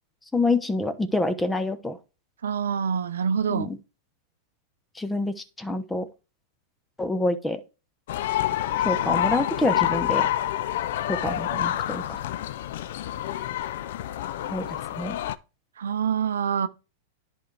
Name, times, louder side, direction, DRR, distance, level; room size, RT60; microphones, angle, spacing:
voice 1, 0.3-2.0 3.5-3.8 5.0-6.1 7.0-7.6 8.8-10.3 11.1-12.2 14.5-14.7 15.0-15.2, left 2 dB, 10° left, 0.9 m, -27 dB
voice 2, 2.4-3.7 15.8-16.7, right 7 dB, 85° right, 0.5 m, -26 dB
sound 1, 8.1-15.3, left 12 dB, 65° left, 0.5 m, -27 dB
10.5 x 4.4 x 3.3 m
hypercardioid pair, 110°, 0 cm